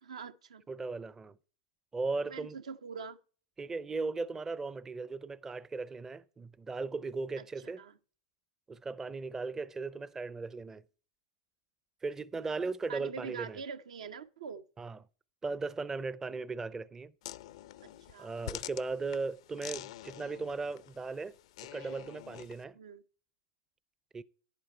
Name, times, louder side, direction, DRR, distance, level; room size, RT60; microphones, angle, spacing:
voice 1, 0.0-0.6 2.2-3.2 7.4-8.0 12.9-14.6 17.8-18.3 21.7-22.0 22.7-23.0, right 5 dB, 85° right, 0.8 m, -44 dB
voice 2, 0.7-1.4 1.9-2.6 3.6-7.8 8.7-10.8 12.0-13.6 14.8-15.0 15.4-17.1 18.2-21.4 21.6-22.8 24.1-24.2, right 3 dB, 15° right, 0.5 m, -37 dB
sound 1, 17.2-22.6, left 14 dB, 70° left, 0.5 m, -47 dB
11.0 x 8.3 x 4.4 m
hypercardioid pair, 115°, 3 cm